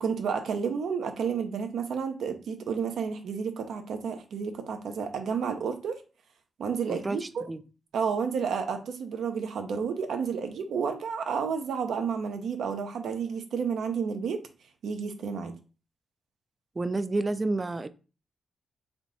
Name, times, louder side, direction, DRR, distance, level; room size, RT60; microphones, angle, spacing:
voice 1, 0.0-6.0 6.6-7.5 7.9-14.4 14.8-15.5, right 6 dB, 80° right, 0.5 m, -31 dB
voice 2, 6.9-7.6 16.8-17.9, right 2 dB, 25° right, 0.3 m, -30 dB
3.4 x 2.7 x 3.9 m
cardioid pair, 90°, 0 cm